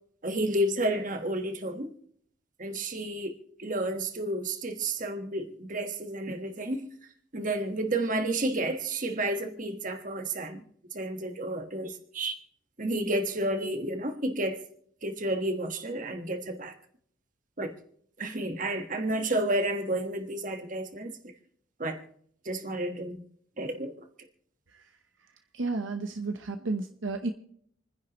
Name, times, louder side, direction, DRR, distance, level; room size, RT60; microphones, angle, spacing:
voice 1, 0.2-1.9 2.6-6.9 7.3-10.6 10.9-12.4 12.8-14.6 15.0-16.7 17.6-17.7 18.2-21.1 21.8-22.0 22.4-23.2 23.6-23.9, right 1 dB, 40° right, 5 dB, 1.4 m, -31 dB
voice 2, 25.5-27.3, right 3 dB, 70° right, 6 dB, 0.9 m, -32 dB
28.5 x 10.5 x 3.0 m, 0.65 s
head